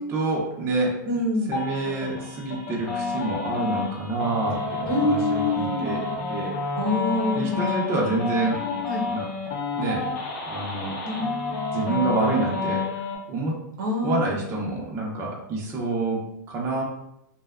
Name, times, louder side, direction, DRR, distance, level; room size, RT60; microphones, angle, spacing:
voice 1, 0.1-1.0 1.5-6.0 6.3-6.5 7.3-8.6 9.1-9.3 9.8-10.0 10.5-11.0 11.7-13.6 14.0-16.8, right 3 dB, 25° right, -3 dB, 0.5 m, -27 dB
voice 2, 1.0-1.6 4.9-5.9 6.7-7.7 8.9-9.0 11.0-11.3 13.8-14.3, left 2 dB, 75° right, -1 dB, 0.8 m, -25 dB
sound 1, 1.5-13.2, left 4 dB, 50° left, 0.7 m, -30 dB
2.6 x 2.1 x 2.3 m, 0.80 s
hypercardioid pair, 140°, 10 cm